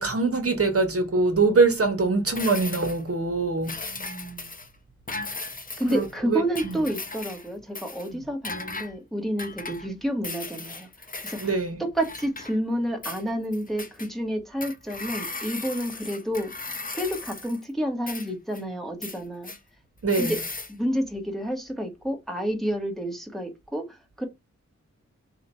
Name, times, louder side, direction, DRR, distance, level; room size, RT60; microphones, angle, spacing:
voice 1, 0.0-3.8 5.9-6.8 11.4-11.8 20.0-20.3, right 3 dB, 50° right, 0.9 m, -23 dB
sound 1, 2.4-3.1 3.6-4.7 5.1-6.1 6.5-7.5 7.8-8.1 8.4-8.9 9.4-9.9 10.2-11.5 12.0-12.8 13.0-14.1 14.6-17.6 18.1-18.6 19.0-19.6 20.1-20.7, left 3 dB, 30° left, 0.7 m, -37 dB
voice 2, 3.8-4.5 5.8-10.9 11.2-16.5 16.9-19.5 20.1-20.4 20.7-24.3, equal, ahead, 1.0 m, -30 dB
4.0 x 2.2 x 4.1 m
wide cardioid pair, 80°, 29 cm